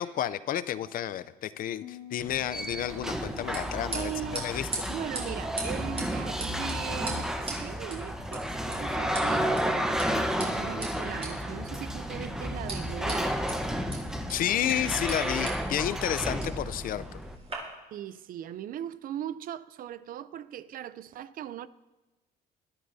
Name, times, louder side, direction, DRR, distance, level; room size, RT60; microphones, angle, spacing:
voice 1, 0.0-4.7 14.3-17.0, left 11 dB, 55° left, 0.5 m, -31 dB
Piano, 1.8-7.4, left 11 dB, 90° left, 1.7 m, -51 dB
sound 1, 2.2-17.3, equal, 5° right, 1.0 m, -32 dB
sound 2, 2.7-17.5, right 3 dB, 35° right, 5.5 m, -42 dB
voice 2, 3.9-4.5 4.9-13.4 16.4-16.5 17.9-21.7, right 11 dB, 55° right, 0.5 m, -39 dB
22.5 x 12.5 x 2.7 m
cardioid pair, 110°, 17 cm